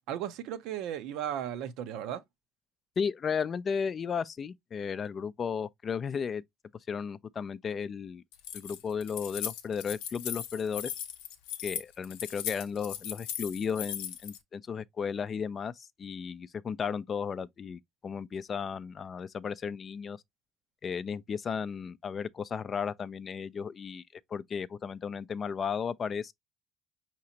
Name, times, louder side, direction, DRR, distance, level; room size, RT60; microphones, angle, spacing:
voice 1, 0.1-2.2, right 10 dB, 70° right, 0.6 m, -35 dB
voice 2, 3.0-6.4 6.9-8.2 8.5-10.9 11.6-20.2 20.8-26.3, left 6 dB, 40° left, 0.4 m, -34 dB
Keys jangling, 8.3-14.4, left 10 dB, 80° left, 0.6 m, -38 dB
4.9 x 2.9 x 2.7 m
hypercardioid pair, 75°, 0 cm